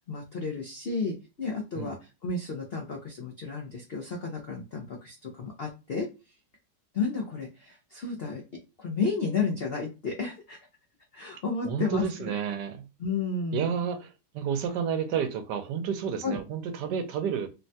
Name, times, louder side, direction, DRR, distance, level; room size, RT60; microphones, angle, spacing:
voice 1, 0.1-6.1 6.9-8.4 8.8-10.6 11.1-12.3 13.0-13.7 16.2-16.4, left 4 dB, 80° left, 0.5 m, -32 dB
voice 2, 11.6-12.9 13.5-14.1 14.3-17.5, right 7 dB, 80° right, 1.2 m, -30 dB
3.5 x 2.1 x 2.6 m
omnidirectional pair, 1.9 m